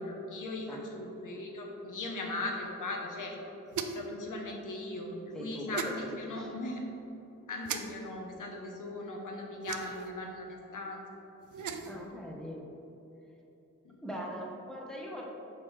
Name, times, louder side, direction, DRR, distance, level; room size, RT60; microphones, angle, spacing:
voice 1, 0.0-3.3 3.9-6.8 7.5-11.0 11.6-11.8 13.8-14.0, left 2 dB, 65° left, 1 dB, 1.1 m, -39 dB
sound 1, 3.7-4.1 5.7-5.9 7.6-7.8 9.6-10.1 11.4-12.0, right 6 dB, 65° right, 0.5 m, -37 dB
voice 2, 5.3-6.5 11.9-12.6 14.0-15.2, equal, ahead, -2 dB, 1.2 m, -41 dB
6.6 x 5.4 x 3.3 m, 3.0 s
cardioid pair, 70°, 33 cm